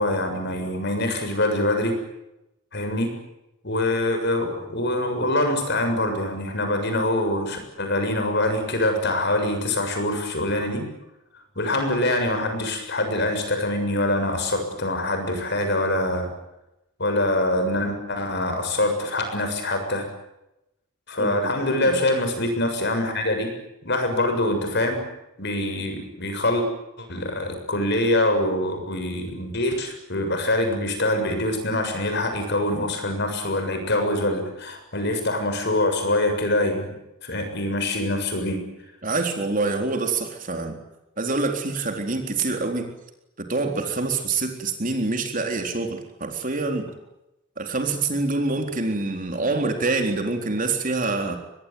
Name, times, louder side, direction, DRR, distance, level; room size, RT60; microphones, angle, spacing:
voice 1, 0.0-2.0 2.7-3.1 3.6-10.9 11.6-16.3 17.0-20.1 21.1-23.5 23.8-25.0 25.4-26.7 27.0-36.9 37.2-38.6, left 1 dB, 50° left, 6 dB, 7.0 m, -24 dB
voice 2, 21.2-22.0 39.0-40.8 41.2-42.9 43.4-46.9 47.6-51.4, right 3 dB, 40° right, 4 dB, 3.9 m, -26 dB
24.5 x 21.0 x 9.5 m, 0.90 s
head